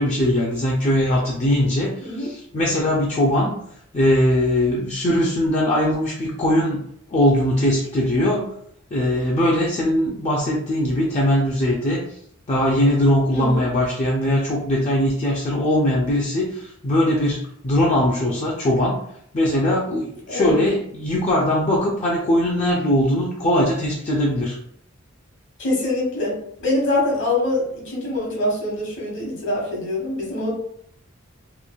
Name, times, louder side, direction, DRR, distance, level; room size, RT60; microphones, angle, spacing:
voice 1, 0.0-3.5 3.9-6.8 7.1-8.5 8.9-12.2 12.5-19.0 19.3-24.6, left 1 dB, 35° left, -3 dB, 0.4 m, -20 dB
voice 2, 20.3-20.6 25.6-30.5, left 2 dB, 60° left, -3 dB, 1.0 m, -24 dB
3.0 x 2.3 x 2.3 m, 0.68 s
head